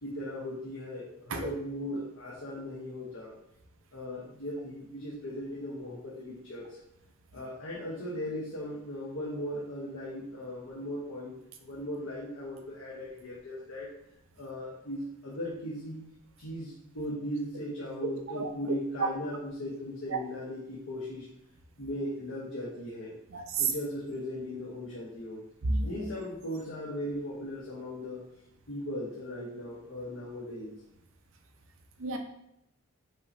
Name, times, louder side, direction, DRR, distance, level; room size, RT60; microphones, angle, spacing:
voice 1, 0.0-3.3 3.9-6.8 7.3-13.9 14.4-16.0 16.4-21.3 21.8-23.1 23.6-25.4 25.8-28.2 28.7-30.7, left 1 dB, 80° left, -6 dB, 1.0 m, -38 dB
voice 2, 23.3-23.7 25.7-25.9 32.0-32.2, right 4 dB, 75° right, 4 dB, 0.6 m, -29 dB
5.4 x 2.7 x 3.2 m, 0.80 s
head